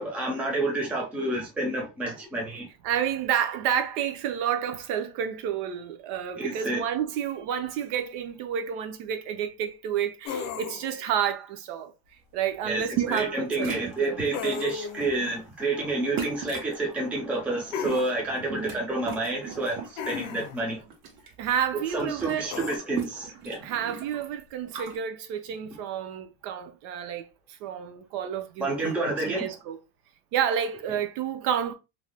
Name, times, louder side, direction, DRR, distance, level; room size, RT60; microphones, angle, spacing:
voice 1, 0.0-2.7 6.3-6.8 12.6-20.8 21.9-23.7 28.6-29.4, right 2 dB, 5° right, 0.3 m, -29 dB
voice 2, 2.8-11.9 12.3-14.2 18.5-18.8 21.4-22.5 23.6-28.9 29.2-29.8 30.3-31.7, right 9 dB, 65° right, 0.7 m, -30 dB
sound 1, 10.3-11.0 14.3-15.1 17.7-18.1 20.0-20.6 22.5-22.8, left 7 dB, 60° left, 0.7 m, -34 dB
sound 2, 12.9-13.4 13.6-14.5 15.0-15.2 16.2-16.7 17.6-18.8 19.0-20.2 20.6-21.3 21.6-21.7 21.9-25.0, right 7 dB, 90° right, 1.1 m, -37 dB
2.7 x 2.1 x 3.3 m
cardioid pair, 155°, 47 cm